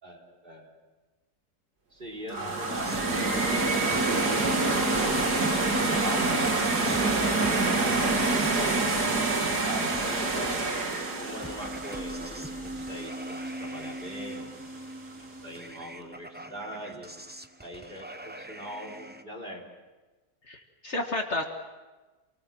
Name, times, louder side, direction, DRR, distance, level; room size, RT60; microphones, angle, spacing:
voice 1, 0.0-0.7 1.9-3.5 3.8-8.8 9.4-10.6 11.2-14.6 15.4-17.1 17.6-19.7, equal, 35° right, 1 dB, 4.2 m, -41 dB
sound 1, 2.3-13.3, right 3 dB, 90° right, 2.9 m, -27 dB
sound 2, 2.8-19.2, right 1 dB, 10° right, 0.8 m, -40 dB
voice 2, 20.5-21.4, left 2 dB, 45° left, 3 dB, 1.9 m, -31 dB
28.0 x 19.5 x 7.6 m, 1.2 s
omnidirectional pair, 1.7 m